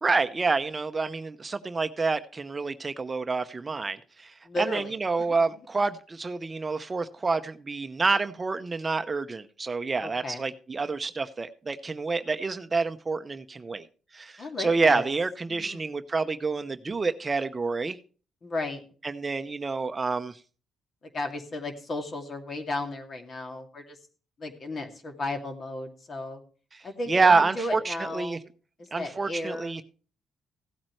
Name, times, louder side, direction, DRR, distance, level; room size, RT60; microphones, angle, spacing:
voice 1, 0.0-13.9 14.1-18.0 19.0-20.4 26.7-28.4 28.9-29.8, right 4 dB, 30° right, 10 dB, 0.7 m, -28 dB
voice 2, 4.4-5.3 10.0-10.4 14.4-15.0 15.5-15.9 18.4-18.8 21.1-24.0 24.4-26.4 26.8-28.4 28.8-29.8, left 2 dB, 45° left, 4 dB, 2.4 m, -34 dB
16.0 x 8.7 x 3.2 m, 0.38 s
cardioid pair, 90°, 0 cm